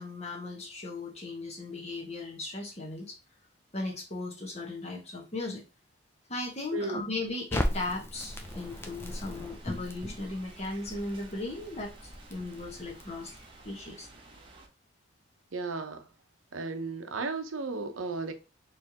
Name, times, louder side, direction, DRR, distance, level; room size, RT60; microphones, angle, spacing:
voice 1, 0.0-3.2 3.7-5.6 6.3-13.3 13.6-14.1, left 2 dB, 30° left, 1.3 m, -37 dB
voice 2, 6.7-7.1 15.5-16.1 16.5-18.3, right 3 dB, 85° right, 0.8 m, -34 dB
Crackle, 7.5-13.6, left 1 dB, 10° left, 0.5 m, -37 dB
sound 1, 8.1-14.7, right 2 dB, 25° right, 0.9 m, -53 dB
4.4 x 3.3 x 2.9 m
head